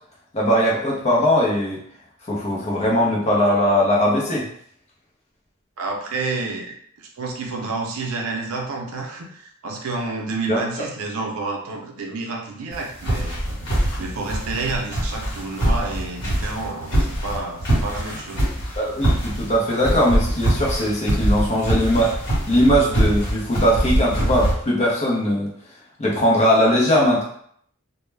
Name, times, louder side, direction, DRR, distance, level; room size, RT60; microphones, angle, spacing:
voice 1, 0.3-1.8 2.3-4.5 10.5-10.6 18.8-22.1 22.5-25.5 26.0-27.2, equal, 30° left, -4 dB, 0.6 m, -20 dB
voice 2, 5.8-13.4 14.0-18.4, right 3 dB, 70° right, 1 dB, 0.5 m, -29 dB
sound 1, 12.7-24.5, right 1 dB, 55° left, 1.1 m, -23 dB
2.2 x 2.1 x 3.2 m, 0.65 s
head